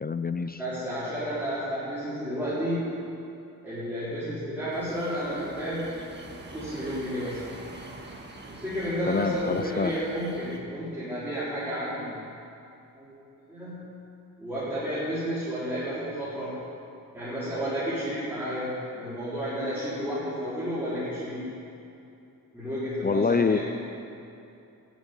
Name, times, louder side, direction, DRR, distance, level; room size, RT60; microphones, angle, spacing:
voice 1, 0.0-0.6 9.1-9.9 23.0-23.6, left 4 dB, 25° left, 11 dB, 0.4 m, -26 dB
voice 2, 0.6-3.0 3.6-6.0 6.5-7.4 8.5-12.2 13.0-13.2 13.5-13.9 14.4-16.6 17.1-21.5 22.5-23.6, equal, 5° right, -14 dB, 4.7 m, -31 dB
sound 1, 4.7-10.6, right 2 dB, 30° right, 1.7 m, -45 dB
13.5 x 9.4 x 9.8 m, 2.7 s
wide cardioid pair, 150°, 36 cm